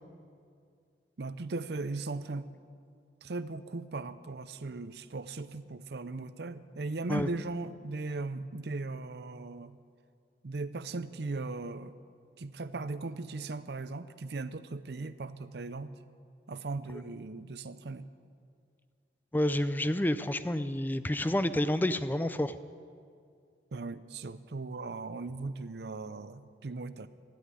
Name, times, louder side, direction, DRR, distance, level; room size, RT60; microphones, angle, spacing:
voice 1, 1.2-2.5 3.2-9.8 10.4-12.0 12.4-15.9 16.5-18.1 23.7-27.1, right 3 dB, 70° right, 13 dB, 0.6 m, -38 dB
voice 2, 19.3-22.6, left 1 dB, 10° left, 12 dB, 0.4 m, -29 dB
13.5 x 10.5 x 9.6 m, 2.3 s
head